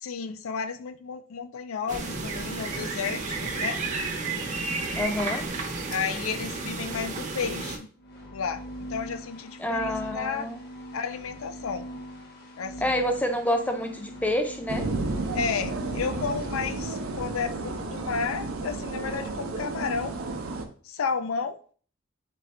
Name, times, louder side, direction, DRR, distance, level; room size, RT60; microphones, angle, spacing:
voice 1, 0.0-3.8 5.9-7.9 8.3-8.6 8.9-10.5 10.9-11.9 12.6-13.0 15.3-20.2 20.8-21.6, left 5 dB, 80° left, 11 dB, 0.4 m, -32 dB
sound 1, 1.9-7.8, right 3 dB, 35° right, 0.7 m, -32 dB
voice 2, 4.9-5.4 9.6-10.6 12.8-14.8, left 1 dB, 5° left, 5 dB, 0.5 m, -27 dB
sound 2, 8.0-17.1, equal, 50° left, 1.1 m, -41 dB
sound 3, 14.7-20.6, right 3 dB, 80° right, 0.6 m, -32 dB
4.1 x 3.7 x 3.3 m, 0.44 s
head